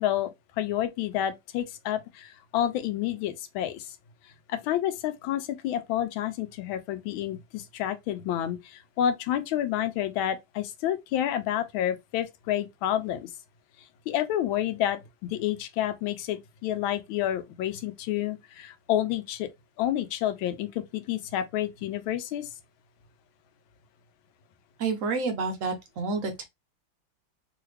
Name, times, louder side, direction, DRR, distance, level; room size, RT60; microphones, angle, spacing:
voice 1, 0.0-3.9 4.5-13.3 14.1-19.5 19.8-22.5, left 11 dB, 90° left, 1.4 m, -29 dB
voice 2, 24.8-26.4, right 4 dB, 80° right, 0.7 m, -29 dB
3.3 x 2.4 x 3.1 m
omnidirectional pair, 2.1 m